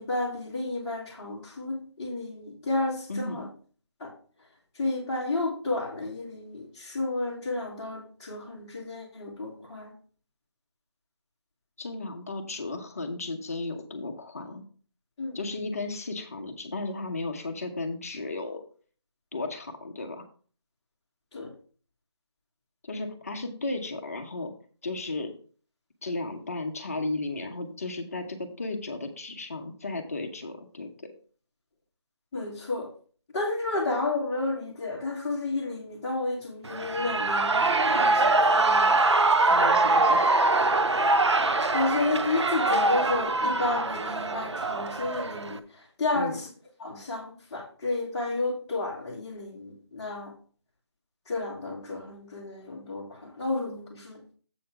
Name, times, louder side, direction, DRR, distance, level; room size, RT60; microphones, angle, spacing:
voice 1, 0.0-3.5 4.0-4.1 4.8-9.9 15.2-15.4 21.3-21.5 32.3-32.9 33.3-39.0 41.7-45.6 46.0-46.5 46.8-50.3 51.3-54.2, left 2 dB, 10° left, -7 dB, 1.7 m, -31 dB
voice 2, 3.1-3.5 11.8-14.6 15.3-18.6 19.3-20.3 22.8-24.5 24.8-25.3 26.0-30.9 39.5-40.5 46.1-46.4, left 2 dB, 35° left, 4 dB, 1.0 m, -34 dB
Shout / Cheering, 36.6-45.6, right 2 dB, 85° right, 0.7 m, -23 dB
7.8 x 4.2 x 5.7 m, 0.41 s
figure-of-eight pair, 175°, 14 cm